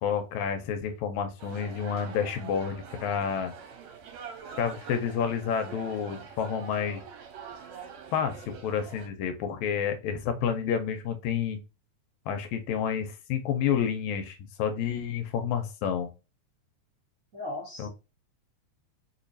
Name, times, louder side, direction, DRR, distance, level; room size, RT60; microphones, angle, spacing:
voice 1, 0.0-3.5 4.6-7.0 8.1-11.6 12.3-16.1 17.8-17.9, left 7 dB, 80° left, 7 dB, 1.9 m, -29 dB
sound 1, 1.4-9.1, right 7 dB, 75° right, 2.0 m, -44 dB
voice 2, 17.3-17.9, left 1 dB, 50° right, -5 dB, 1.0 m, -37 dB
4.4 x 3.0 x 2.6 m, 0.29 s
omnidirectional pair, 3.4 m